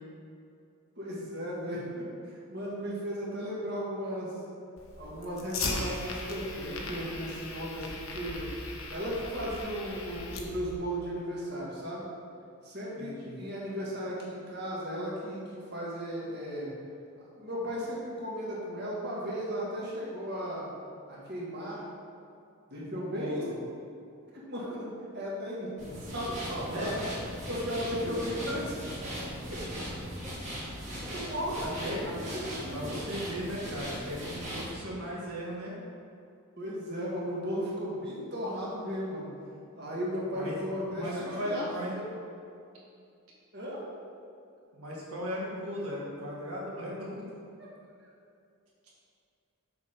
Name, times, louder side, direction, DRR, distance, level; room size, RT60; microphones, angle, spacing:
voice 1, 1.0-4.3 5.0-8.4 8.9-12.1 12.6-16.7 17.4-20.7 21.1-21.8 22.7-23.4 24.5-24.9 25.1-25.7 26.0-26.9 27.5-29.1 31.1-31.6 32.0-33.1 36.6-39.3 39.8-41.6 43.5-43.8, equal, 50° right, -6 dB, 1.8 m, -35 dB
Fire, 4.8-10.8, left 3 dB, 70° left, 0.9 m, -38 dB
voice 2, 13.0-13.4 22.9-23.5 26.7-27.0 31.6-32.1 32.7-35.7 40.3-41.9 44.7-47.2, equal, 80° right, -4 dB, 1.8 m, -37 dB
sound 1, 25.8-34.7, equal, 35° right, 1.8 m, -39 dB
6.9 x 4.4 x 5.1 m, 2.5 s
head